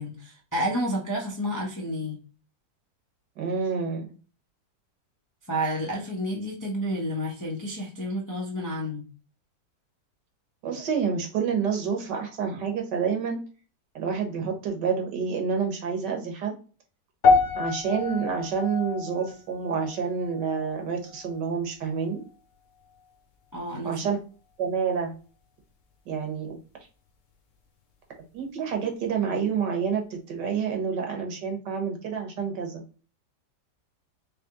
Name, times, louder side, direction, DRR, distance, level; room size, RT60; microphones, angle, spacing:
voice 1, 0.0-2.2 5.5-9.0 23.5-24.0, equal, 20° left, -3 dB, 0.5 m, -30 dB
voice 2, 3.4-4.0 10.6-13.4 13.9-16.5 17.5-22.2 23.8-24.2 24.6-25.1 26.1-26.6 28.3-32.8, right 6 dB, 75° right, 3 dB, 1.7 m, -28 dB
sound 1, 17.2-21.6 21.9-22.3 22.9-23.0, left 4 dB, 55° left, 0.9 m, -27 dB
3.8 x 3.3 x 3.7 m, 0.36 s
omnidirectional pair, 1.9 m